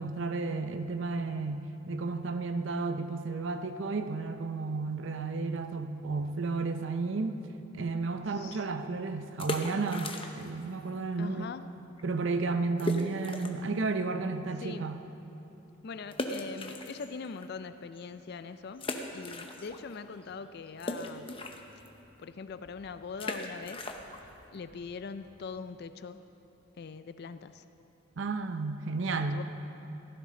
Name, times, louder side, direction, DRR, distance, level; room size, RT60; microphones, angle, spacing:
voice 1, 0.0-7.4 7.7-11.5 12.0-15.0 28.2-29.4, right 3 dB, 60° right, 8 dB, 0.6 m, -32 dB
voice 2, 8.3-8.7 11.2-11.7 14.6-14.9 15.8-21.4 22.2-26.2 26.8-27.6 29.3-29.4, left 5 dB, 50° left, 11 dB, 0.4 m, -42 dB
sound 1, 9.3-10.6 10.9-11.0 11.6-11.7 12.0-12.1 12.8-13.7 14.2-14.3 16.1-17.4 17.9-18.0 18.8-20.0 20.2-25.7, left 2 dB, 25° left, 0.7 m, -38 dB
15.5 x 13.5 x 3.8 m, 2.9 s
head